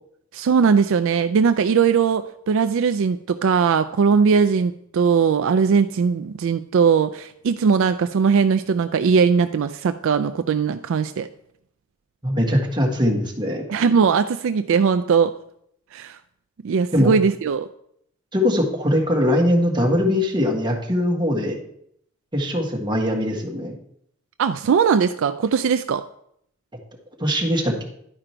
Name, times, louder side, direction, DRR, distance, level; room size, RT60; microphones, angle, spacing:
voice 1, 0.3-11.3 13.7-15.3 15.9-16.2 16.6-17.7 24.4-26.0, right 6 dB, 65° right, 10 dB, 0.4 m, -19 dB
voice 2, 12.2-13.6 16.9-17.1 18.3-21.6 22.3-23.7 27.2-27.8, equal, 20° right, -1 dB, 1.6 m, -21 dB
11.0 x 5.0 x 4.5 m, 0.70 s
head